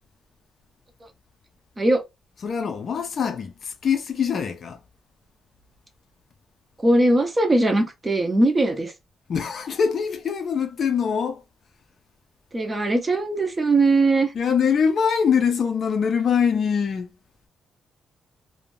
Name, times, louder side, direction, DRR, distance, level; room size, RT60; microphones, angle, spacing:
voice 1, 2.4-4.8 9.3-11.4 14.3-17.1, left 6 dB, 45° left, 0.4 m, -23 dB
voice 2, 6.8-8.9 12.5-14.3, right 2 dB, 15° right, 0.4 m, -20 dB
2.5 x 2.1 x 3.0 m
wide cardioid pair, 175°, 0 cm